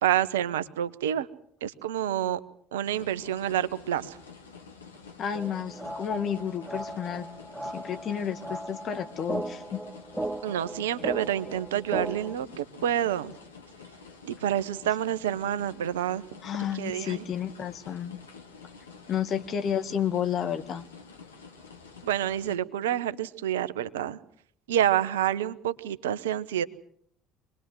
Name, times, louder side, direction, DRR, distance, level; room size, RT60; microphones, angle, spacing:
voice 1, 0.0-1.3 1.6-2.4 2.7-4.2 10.4-13.3 14.2-16.2 16.7-17.2 22.0-24.2 24.7-26.6, right 11 dB, 75° right, 15 dB, 1.0 m, -28 dB
sound 1, 2.8-22.6, left 5 dB, 85° left, 2.1 m, -49 dB
voice 2, 5.2-7.3 7.6-9.8 16.4-18.2 19.1-20.9, left 8 dB, 45° left, 8 dB, 2.1 m, -31 dB
sound 2, 5.3-12.3, right 1 dB, 5° right, 1.6 m, -37 dB
26.0 x 20.5 x 7.9 m, 0.66 s
figure-of-eight pair, 60°, 0 cm